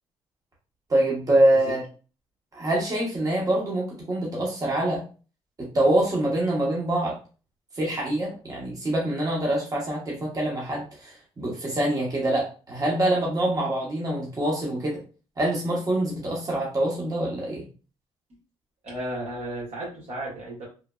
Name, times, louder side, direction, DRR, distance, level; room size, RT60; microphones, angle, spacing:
voice 1, 0.9-1.8 2.5-5.0 5.6-7.2 7.8-15.0 15.4-17.6, right 1 dB, 35° right, -3 dB, 1.0 m, -25 dB
voice 2, 18.8-20.7, right 1 dB, 70° right, -3 dB, 1.4 m, -34 dB
3.2 x 2.0 x 2.3 m, 0.36 s
cardioid pair, 80°, 11 cm